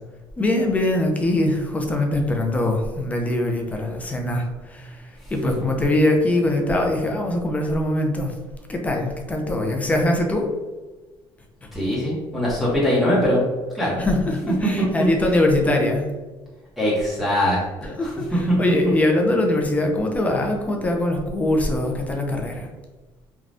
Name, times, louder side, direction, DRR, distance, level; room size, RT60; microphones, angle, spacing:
voice 1, 0.4-8.4 8.7-10.5 14.0-16.0 17.8-22.7, left 1 dB, 15° left, 2 dB, 0.5 m, -22 dB
voice 2, 11.7-13.5 13.7-14.0 15.0-15.1 16.8-17.6 18.0-18.1 18.5-18.6, left 1 dB, ahead, -9 dB, 0.9 m, -21 dB
3.3 x 2.3 x 2.5 m, 1.2 s
cardioid pair, 130°, 10 cm